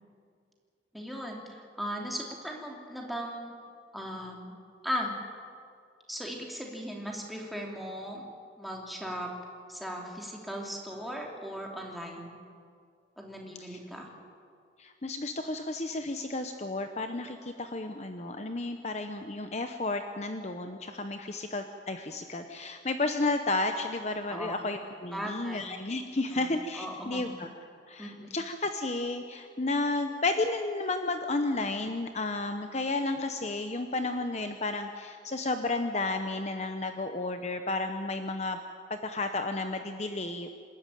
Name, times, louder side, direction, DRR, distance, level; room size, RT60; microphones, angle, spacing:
voice 1, 0.9-3.5 3.9-4.5 4.8-5.1 6.1-8.2 8.6-9.3 9.7-12.4 13.2-14.1 24.3-24.6 25.1-25.6 26.3-26.5 26.7-27.4 28.0-28.3, equal, ahead, -1 dB, 3.0 m, -37 dB
voice 2, 14.8-27.5 27.9-38.6 38.9-40.6, left 2 dB, 40° left, 7 dB, 0.9 m, -32 dB
27.0 x 13.0 x 9.1 m, 2.2 s
head